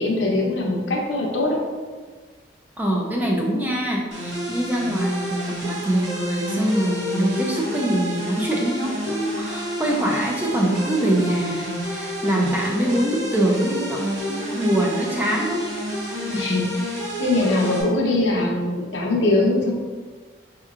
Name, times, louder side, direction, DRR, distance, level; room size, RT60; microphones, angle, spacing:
voice 1, 0.0-1.6 16.3-16.7 17.2-19.7, left 2 dB, 80° left, -1 dB, 0.8 m, -21 dB
voice 2, 2.8-15.6 16.1-16.5, right 1 dB, 10° right, -2 dB, 0.4 m, -24 dB
sound 1, 4.1-17.8, equal, 90° right, 0.9 m, -29 dB
4.4 x 2.9 x 2.4 m, 1.4 s
head